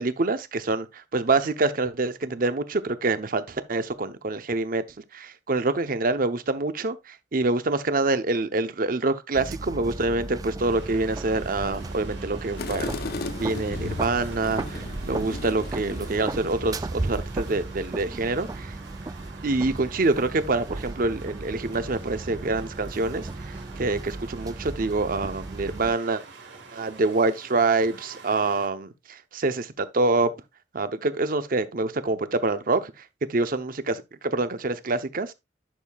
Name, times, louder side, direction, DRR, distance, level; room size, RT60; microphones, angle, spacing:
voice 1, 0.0-4.8 5.1-12.9 13.3-18.8 19.4-26.2 26.7-30.3 30.7-32.9 33.3-35.3, right 3 dB, 50° right, 0.7 m, -26 dB
sound 1, 9.3-26.0, right 2 dB, 20° right, 0.3 m, -35 dB
sound 2, 10.6-28.7, right 4 dB, 75° right, 1.9 m, -47 dB
sound 3, 12.6-16.6, left 3 dB, 60° left, 0.6 m, -35 dB
10.5 x 6.6 x 2.3 m
head